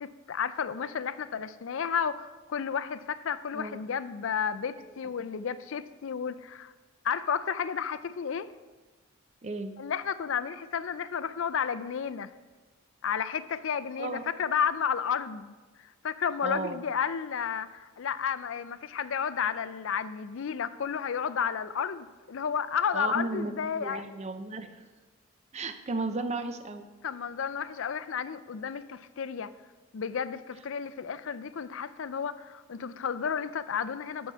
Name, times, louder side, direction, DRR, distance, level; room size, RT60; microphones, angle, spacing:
voice 1, 0.0-6.7 7.0-8.5 9.8-12.3 13.0-15.5 16.0-24.0 27.0-29.5 29.9-34.3, left 7 dB, 60° left, 14 dB, 0.4 m, -32 dB
voice 2, 9.4-9.7 14.0-14.2 16.4-16.8 22.9-24.8 25.5-26.9, right 3 dB, 30° right, 8 dB, 0.5 m, -34 dB
12.0 x 4.7 x 5.6 m, 1.3 s
head